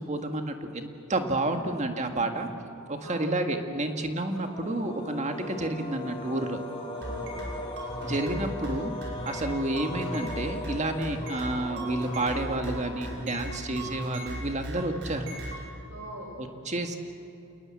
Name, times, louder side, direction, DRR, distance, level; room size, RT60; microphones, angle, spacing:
voice 1, 0.0-2.5 2.9-6.6 8.0-15.3 16.4-17.0, right 2 dB, 30° right, 5 dB, 1.8 m, -30 dB
voice 2, 1.4-2.5 3.0-3.8 6.9-7.6 15.9-16.4, equal, 70° right, 1 dB, 5.3 m, -43 dB
sound 1, 4.4-13.7, left 1 dB, 25° left, 2.3 m, -39 dB
sound 2, 7.0-15.6, right 1 dB, 55° right, 6.1 m, -37 dB
28.0 x 19.5 x 7.7 m, 2.9 s
head